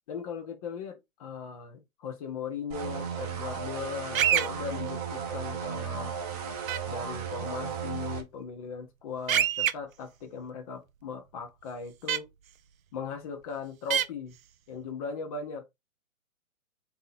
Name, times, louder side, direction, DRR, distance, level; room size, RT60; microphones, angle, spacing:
voice 1, 0.1-6.1 6.9-12.3 12.9-14.4 14.7-15.7, left 6 dB, 25° left, 0.7 m, -38 dB
sound 1, 2.7-8.2, right 7 dB, 30° right, 0.7 m, -35 dB
sound 2, 4.1-4.5 6.7-6.8 9.3-9.7 12.1-12.2 13.9-14.1, right 10 dB, 70° right, 0.5 m, -24 dB
3.7 x 2.8 x 2.7 m
hypercardioid pair, 130°, 42 cm